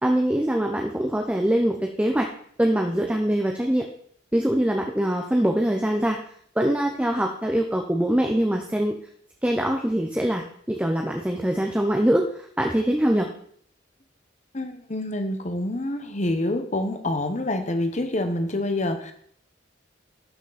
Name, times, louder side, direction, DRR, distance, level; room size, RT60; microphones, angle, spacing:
voice 1, 0.0-2.3 2.6-3.9 4.3-6.2 6.6-8.9 9.4-13.3, right 1 dB, 5° right, 2 dB, 0.6 m, -23 dB
voice 2, 14.5-19.1, left 1 dB, 35° left, 8 dB, 1.0 m, -27 dB
12.0 x 6.1 x 4.1 m, 0.62 s
head